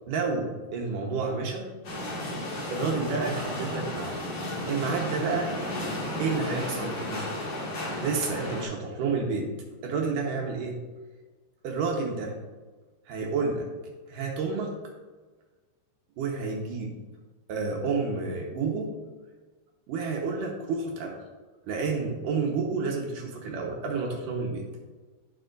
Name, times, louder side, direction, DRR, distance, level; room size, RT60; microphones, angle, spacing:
voice 1, 0.1-1.7 2.7-4.2 4.7-5.6 6.2-7.3 8.0-9.5 9.8-10.8 11.6-12.4 13.1-13.7 14.1-14.7 16.2-16.9 17.5-18.9 19.9-21.2 21.7-24.6, right 4 dB, 70° right, 0 dB, 2.2 m, -30 dB
sound 1, 1.8-8.7, left 1 dB, 45° left, 2.5 m, -33 dB
15.5 x 5.5 x 2.6 m, 1.3 s
omnidirectional pair, 5.1 m